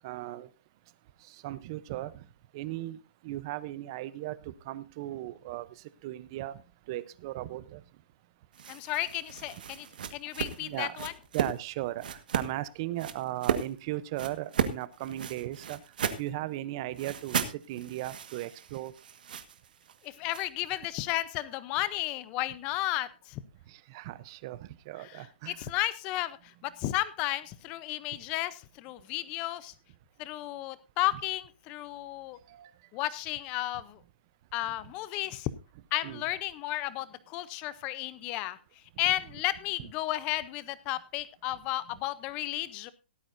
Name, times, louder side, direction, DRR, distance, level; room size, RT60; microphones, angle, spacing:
voice 1, 0.0-0.5 1.4-2.1 2.5-3.0 3.2-5.7 6.0-6.6 6.9-7.8 10.6-11.0 11.3-15.8 16.2-18.9 23.9-25.7 32.6-32.7 36.0-36.2, right 15 dB, 25° right, 17 dB, 0.6 m, -37 dB
sound 1, 8.5-11.6 12.0-12.5 13.0-13.7 14.2-16.3 17.0-20.5, right 7 dB, 50° right, 1.5 m, -34 dB
voice 2, 8.7-11.1 20.0-23.4 25.1-29.7 30.2-32.4 32.9-34.0 34.5-35.5 35.9-38.6 39.0-42.9, left 16 dB, 15° left, 17 dB, 0.6 m, -33 dB
16.5 x 13.5 x 2.6 m, 0.29 s
hypercardioid pair, 175°, 6 cm